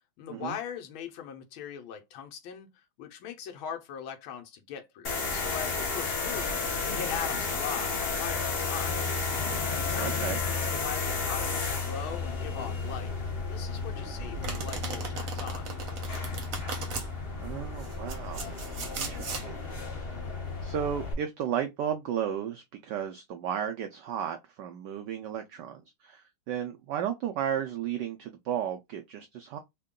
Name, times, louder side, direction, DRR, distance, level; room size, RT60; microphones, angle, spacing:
voice 1, 0.2-6.6 6.8-9.0 9.8-15.7, left 8 dB, 75° left, 1.5 m, -40 dB
sound 1, 5.0-21.1, left 4 dB, 50° left, 0.7 m, -32 dB
voice 2, 10.0-10.4 17.4-18.4 18.9-19.6 20.0-20.1 20.6-29.6, right 9 dB, 80° right, 0.9 m, -34 dB
Domestic sounds home sounds, 14.4-17.1 17.8-19.5, right 4 dB, 55° right, 1.0 m, -37 dB
3.6 x 2.2 x 3.6 m
omnidirectional pair, 2.4 m